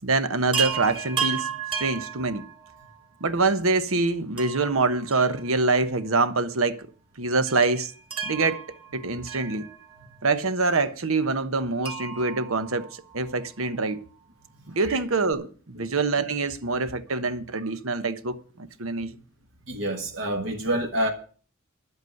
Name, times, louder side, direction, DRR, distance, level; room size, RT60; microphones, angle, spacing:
voice 1, 0.0-2.5 3.2-6.9 7.2-7.9 8.2-8.6 8.9-9.7 10.2-12.9 13.1-14.0 14.7-19.2, right 3 dB, 90° right, 1.1 m, -25 dB
Chime, 0.5-3.0 4.4-5.9 6.2-6.3 7.5-10.2 11.8-13.4 15.0-15.1 15.3-15.4, right 7 dB, 25° right, 1.8 m, -33 dB
voice 2, 19.7-21.1, right 1 dB, 65° right, 1.5 m, -27 dB
11.0 x 8.2 x 7.8 m
head